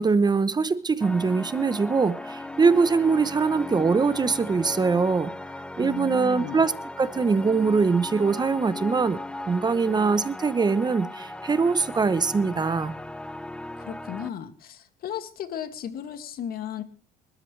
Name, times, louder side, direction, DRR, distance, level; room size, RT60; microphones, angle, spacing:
voice 1, 0.0-5.3 5.8-6.7 7.0-9.2 9.5-13.0, right 4 dB, 25° right, 0.9 m, -22 dB
sound 1, 1.0-14.3, left 1 dB, 5° left, 0.9 m, -37 dB
voice 2, 5.8-6.7 13.8-16.8, left 9 dB, 65° left, 2.3 m, -35 dB
30.0 x 13.0 x 3.3 m
cardioid pair, 110°, 17 cm